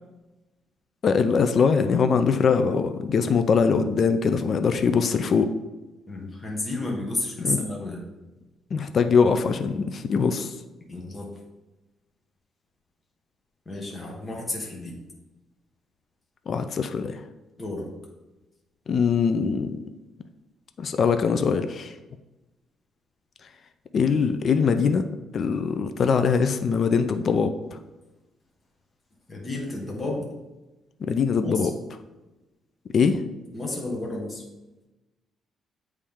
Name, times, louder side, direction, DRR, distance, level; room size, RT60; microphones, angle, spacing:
voice 1, 1.0-5.5 7.4-7.7 8.7-10.6 16.5-17.2 18.9-19.7 20.8-22.0 23.9-25.0 25.3-27.8 31.0-31.7 32.9-33.2, left 5 dB, 55° left, 9 dB, 0.4 m, -22 dB
voice 2, 6.1-8.0 10.9-11.3 13.6-14.9 17.6-17.9 29.3-30.3 31.4-31.7 33.5-34.4, left 2 dB, 25° left, -1 dB, 1.4 m, -31 dB
8.4 x 3.2 x 3.6 m, 1.0 s
cardioid pair, 90°, 0 cm